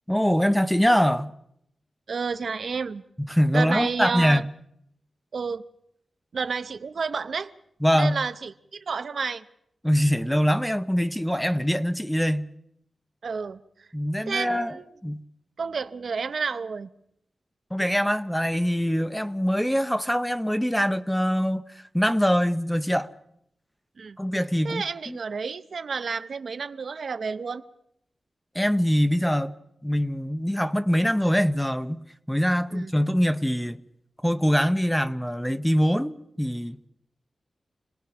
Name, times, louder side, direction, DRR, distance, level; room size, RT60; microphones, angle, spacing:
voice 1, 0.1-1.3 3.2-4.4 7.8-8.2 9.8-12.5 13.9-14.8 15.0-15.2 17.7-23.1 24.2-25.2 28.5-29.5 29.8-33.8 34.2-36.9, equal, 5° left, 0.9 m, -23 dB
voice 2, 2.1-3.0 3.5-4.4 5.3-5.6 6.3-7.5 7.9-9.4 13.2-13.6 14.3-14.9 15.6-16.9 24.0-24.2 24.6-27.6 32.7-32.9, right 5 dB, 65° right, 0.9 m, -30 dB
28.0 x 19.5 x 6.1 m
wide cardioid pair, 115°, 0 cm